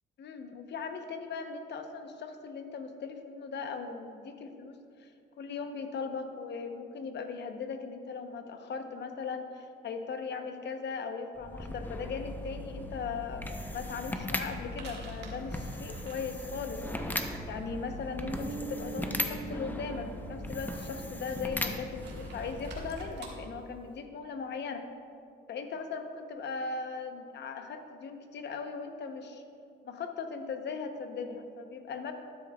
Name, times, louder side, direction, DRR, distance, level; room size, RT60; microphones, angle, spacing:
voice 1, 0.2-5.1 5.4-16.8 17.5-24.9 25.5-29.4 29.8-32.1, left 5 dB, 60° left, 6 dB, 0.9 m, -38 dB
sound 1, 11.4-23.3, left 1 dB, 10° left, 0.6 m, -38 dB
sound 2, 13.7-23.3, right 3 dB, 60° right, 1.6 m, -53 dB
Guitar, 18.2-22.8, right 4 dB, 25° right, 0.7 m, -44 dB
12.5 x 9.3 x 2.3 m, 2.5 s
cardioid pair, 90°, 20 cm